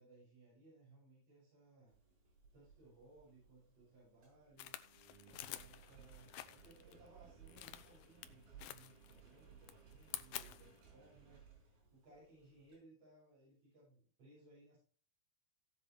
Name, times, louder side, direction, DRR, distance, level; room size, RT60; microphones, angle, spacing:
voice 1, 0.0-1.9 2.5-4.8 5.5-14.8, right 2 dB, 40° right, -7 dB, 7.9 m, -64 dB
Engine, 1.9-12.8, right 6 dB, 75° right, 6.6 m, -62 dB
sound 1, 4.6-6.9 7.5-8.3 8.6-9.3 9.6-10.8, left 13 dB, 75° left, 2.3 m, -49 dB
17.0 x 8.0 x 3.3 m, 0.39 s
omnidirectional pair, 4.2 m